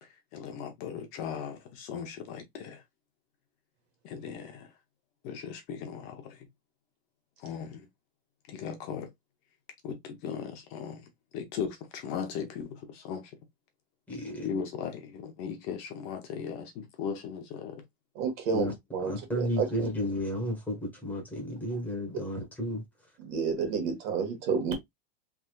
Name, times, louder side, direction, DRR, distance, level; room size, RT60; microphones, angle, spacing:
voice 1, 0.0-2.8 4.0-4.7 5.2-6.5 7.4-7.9 8.5-9.1 9.8-13.4 14.4-17.8, left 7 dB, 45° left, 0.7 m, -38 dB
voice 2, 14.1-14.5 18.5-18.7 19.0-22.8, equal, 5° left, 1.2 m, -32 dB
voice 3, 18.1-19.9 23.2-24.7, right 6 dB, 50° right, 1.3 m, -30 dB
3.4 x 2.7 x 2.2 m
supercardioid pair, 155°, 31 cm